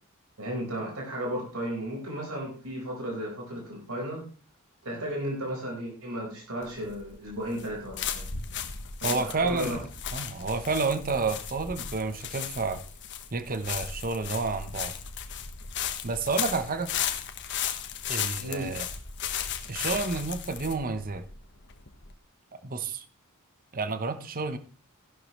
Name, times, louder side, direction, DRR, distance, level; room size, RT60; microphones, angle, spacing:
voice 1, 0.4-4.2 4.8-8.2 9.1-9.8 18.4-18.7, equal, 70° right, -1 dB, 4.9 m, -34 dB
sound 1, 6.6-22.1, left 8 dB, 55° left, 1.4 m, -35 dB
voice 2, 9.0-12.8 13.3-14.9 16.0-16.9 18.1-18.9 19.7-21.2 22.5-23.1 23.7-24.6, right 4 dB, 40° right, 11 dB, 1.0 m, -30 dB
15.5 x 11.5 x 3.2 m, 0.38 s
head